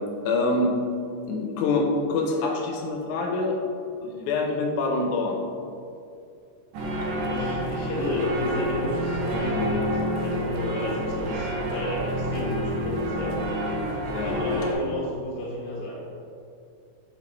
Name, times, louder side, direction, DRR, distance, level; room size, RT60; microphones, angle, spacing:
voice 1, 0.3-0.7 1.3-3.6 4.0-5.4 14.1-14.4, left 3 dB, 90° left, 1 dB, 2.1 m, -25 dB
sound 1, 6.7-14.7, equal, 75° right, 1.8 m, -28 dB
voice 2, 7.3-9.9 10.2-13.4 14.1-16.0, left 1 dB, 55° left, -5 dB, 2.1 m, -32 dB
5.4 x 4.1 x 4.3 m, 2.5 s
omnidirectional pair, 3.3 m